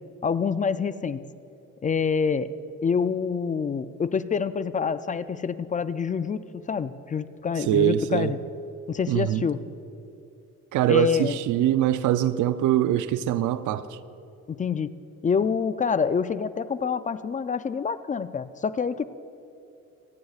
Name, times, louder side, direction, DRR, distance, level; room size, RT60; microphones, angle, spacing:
voice 1, 0.2-1.2 1.8-2.5 2.8-8.4 8.9-9.6 10.9-11.4 14.5-14.9 15.2-19.0, left 6 dB, 25° left, 0.4 m, -26 dB
voice 2, 7.7-8.3 9.1-9.5 10.7-13.9, right 12 dB, 80° right, 0.5 m, -23 dB
25.0 x 9.4 x 2.4 m
cardioid pair, 90°, 30 cm